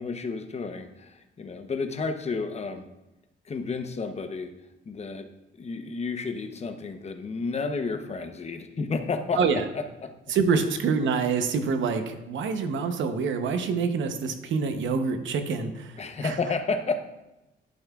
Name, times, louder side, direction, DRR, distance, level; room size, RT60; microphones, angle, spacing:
voice 1, 0.0-2.9 3.5-4.5 4.9-10.1 16.0-17.0, left 4 dB, 35° left, 7 dB, 0.8 m, -31 dB
voice 2, 10.3-16.4, right 5 dB, 75° right, 7 dB, 0.8 m, -26 dB
11.5 x 5.6 x 2.4 m, 0.99 s
cardioid pair, 90°, 20 cm